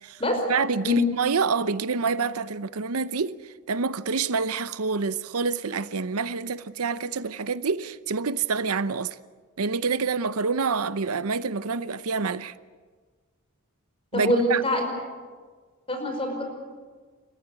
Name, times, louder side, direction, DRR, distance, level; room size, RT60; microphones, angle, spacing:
voice 1, 0.5-9.2 9.6-12.5 14.1-14.6, right 5 dB, 85° right, 0.8 m, -27 dB
voice 2, 14.1-14.8 15.9-16.5, left 1 dB, 25° left, 5.3 m, -24 dB
30.0 x 14.5 x 9.7 m
head